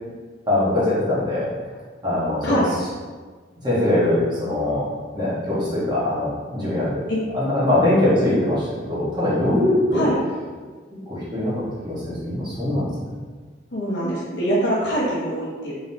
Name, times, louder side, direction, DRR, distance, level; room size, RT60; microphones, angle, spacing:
voice 1, 0.5-1.5 2.0-2.6 3.6-7.1 7.3-10.1 10.9-13.0, left 1 dB, 25° right, -9 dB, 1.4 m, -22 dB
voice 2, 2.4-2.8 7.1-7.2 9.9-10.2 13.7-15.8, equal, 60° left, -6 dB, 0.9 m, -24 dB
3.9 x 3.6 x 2.8 m, 1.5 s
head